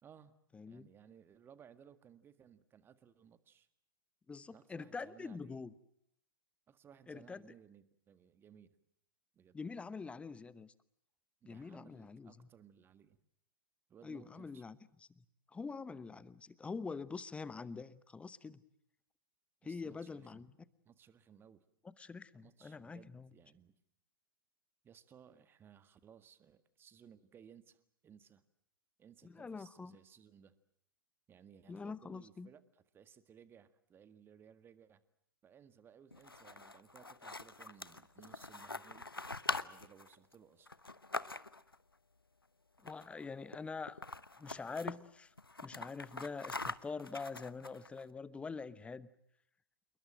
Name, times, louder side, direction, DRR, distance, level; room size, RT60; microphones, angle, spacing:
voice 1, 0.0-0.3 0.6-3.7 4.5-5.6 6.7-8.7 9.3-9.6 11.4-13.2 13.9-14.6 19.6-20.5 20.8-21.6 22.4-23.7 24.8-28.4 29.0-30.6 31.3-35.0 35.4-39.1 39.6-40.7, right 8 dB, 20° right, 13 dB, 1.7 m, -61 dB
voice 2, 0.5-0.8 4.3-5.7 7.1-7.5 9.5-10.7 11.5-12.5 14.0-14.8 15.2-15.3 15.5-18.6 19.6-20.5 22.0-23.3 29.2-29.9 31.7-32.5 42.8-44.0 44.4-45.3 45.6-49.1, left 4 dB, 10° left, 18 dB, 1.0 m, -45 dB
sound 1, 36.1-41.8 42.8-43.2 43.5-43.6 43.9-45.0 45.4-48.0, left 3 dB, 90° left, 1.0 m, -43 dB
28.5 x 21.5 x 7.6 m, 0.73 s
figure-of-eight pair, 110°, 12 cm